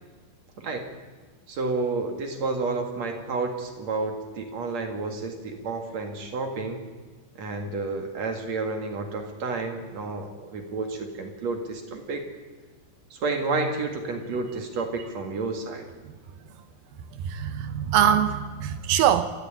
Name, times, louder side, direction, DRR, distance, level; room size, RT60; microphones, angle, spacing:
voice 1, 0.6-0.9 1.5-6.9 7.4-12.2 13.1-15.9, right 3 dB, 50° right, 5 dB, 2.3 m, -30 dB
voice 2, 17.1-19.3, right 9 dB, 80° right, 10 dB, 2.1 m, -23 dB
28.5 x 14.0 x 9.0 m, 1.4 s
omnidirectional pair, 5.6 m